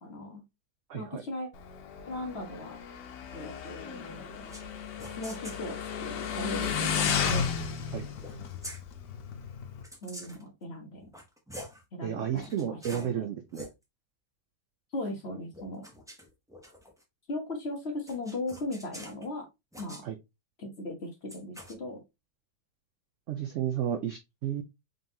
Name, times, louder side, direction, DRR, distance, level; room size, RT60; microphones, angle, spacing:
voice 1, 0.0-0.4 0.9-1.5 2.1-2.8 3.3-4.5 5.1-7.4 10.0-11.1 11.9-12.4 12.7-13.3 14.9-15.9 17.3-19.5 19.8-20.0 20.6-22.0, left 1 dB, 40° left, 1.2 m, -38 dB
voice 2, 0.9-1.2 7.9-8.1 12.0-13.6 20.0-20.2 23.3-24.6, right 9 dB, 75° right, 0.7 m, -32 dB
Motorcycle, 1.5-9.8, left 7 dB, 75° left, 1.3 m, -34 dB
sound 1, 4.5-4.7 5.0-5.6 6.6-7.5 8.2-8.4 8.6-8.8 9.8-10.5 11.0-11.8 12.3-13.1 13.4-13.7 15.5-17.0 18.1-19.3 19.7-20.0 21.3-21.7, equal, 5° right, 0.4 m, -46 dB
3.9 x 3.8 x 2.7 m
omnidirectional pair, 1.9 m